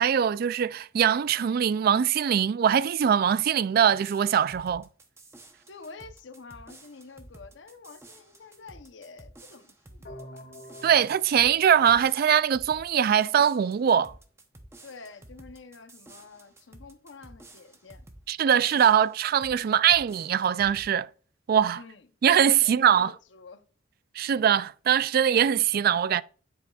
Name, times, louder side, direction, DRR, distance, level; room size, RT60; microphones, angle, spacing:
voice 1, 0.0-4.9 10.8-14.1 18.3-21.1 21.5-21.8 22.2-23.1 24.2-26.2, right 8 dB, 55° right, 0.3 m, -22 dB
sound 1, 4.0-18.3 18.7-19.6 19.9-20.9, right 1 dB, 15° right, 0.8 m, -51 dB
voice 2, 5.7-10.4 14.8-18.0 21.7-22.1 22.6-23.6, left 4 dB, 80° left, 0.8 m, -48 dB
sound 2, 10.0-13.0, equal, 60° left, 2.3 m, -48 dB
9.7 x 7.8 x 2.4 m
head